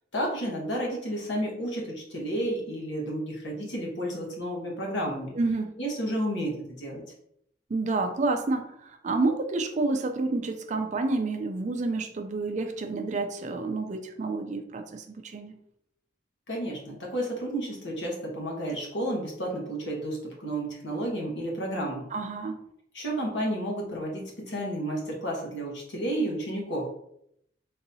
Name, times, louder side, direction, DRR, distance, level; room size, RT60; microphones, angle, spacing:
voice 1, 0.1-5.3 5.8-7.0 16.5-22.1 22.9-26.9, right 1 dB, 90° left, -2 dB, 1.2 m, -31 dB
voice 2, 5.3-5.8 7.7-15.6 22.1-22.6, right 3 dB, 40° right, 6 dB, 0.4 m, -29 dB
3.9 x 2.7 x 2.7 m, 0.73 s
head